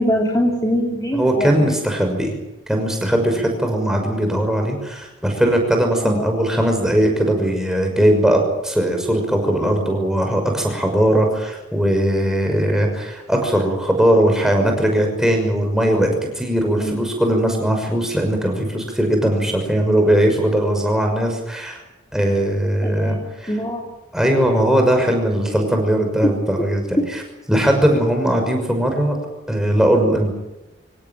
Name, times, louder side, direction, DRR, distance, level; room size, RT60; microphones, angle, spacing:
voice 1, 0.0-1.7 6.0-6.3 16.8-17.0 22.8-23.9, equal, 15° left, -1 dB, 3.2 m, -22 dB
voice 2, 1.1-2.3 2.7-21.8 22.1-23.6 24.1-27.2 27.5-29.1 29.5-30.3, right 1 dB, ahead, 2 dB, 6.0 m, -19 dB
25.5 x 18.0 x 9.2 m, 0.98 s
head